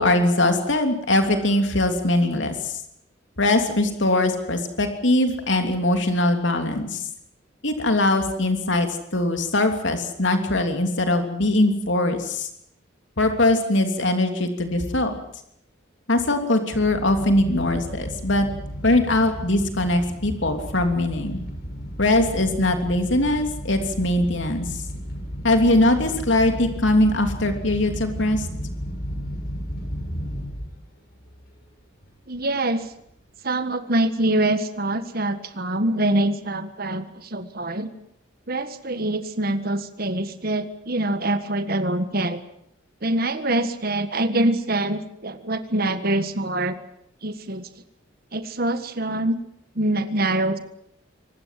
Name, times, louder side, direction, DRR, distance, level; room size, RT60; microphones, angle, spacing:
voice 1, 0.0-2.8 3.4-7.0 7.6-12.5 13.2-15.1 16.1-18.5 18.8-21.4 22.0-24.7 25.4-28.5, left 1 dB, 65° left, 6 dB, 3.1 m, -21 dB
sound 1, 16.7-30.9 31.2-31.6 32.0-32.1 32.3-32.5, equal, 50° left, 6.9 m, -34 dB
voice 2, 32.3-32.9 33.4-37.9 38.5-42.4 43.0-46.8 47.2-47.7 48.3-49.4 49.7-50.6, right 1 dB, 50° right, 10 dB, 1.6 m, -24 dB
24.5 x 19.5 x 7.7 m, 0.71 s
head